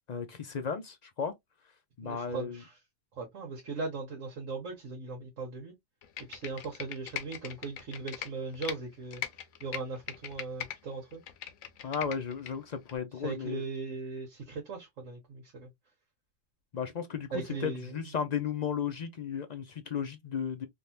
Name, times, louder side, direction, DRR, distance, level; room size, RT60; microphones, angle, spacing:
voice 1, 0.1-1.3 2.0-2.6 11.8-13.6 16.7-17.3 17.6-20.7, left 7 dB, 55° left, 0.4 m, -34 dB
voice 2, 2.0-2.8 3.2-5.7 6.3-9.2 9.6-11.2 13.2-15.7 17.3-18.0, right 4 dB, 70° right, 1.3 m, -38 dB
Computer keyboard, 6.0-8.8 9.1-10.8 11.1-12.5 12.9-13.0, left 10 dB, 90° left, 1.1 m, -40 dB
3.4 x 2.5 x 2.7 m
omnidirectional pair, 1.4 m